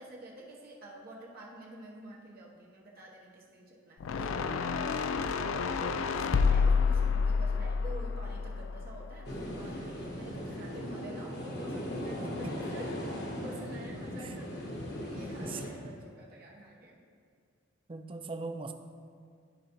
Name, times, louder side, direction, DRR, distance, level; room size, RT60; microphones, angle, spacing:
voice 1, 0.0-5.1 5.4-12.9 13.3-14.7 15.0-17.0, right 1 dB, 50° right, -3 dB, 1.0 m, -48 dB
sound 1, 4.0-9.3, left 5 dB, 80° left, 0.4 m, -29 dB
sound 2, 9.2-15.7, equal, 55° left, 1.3 m, -38 dB
voice 2, 12.2-12.6 14.2-14.3 15.4-15.9 17.9-18.7, right 3 dB, 25° right, 7 dB, 0.4 m, -40 dB
12.5 x 5.0 x 3.0 m, 2.2 s
head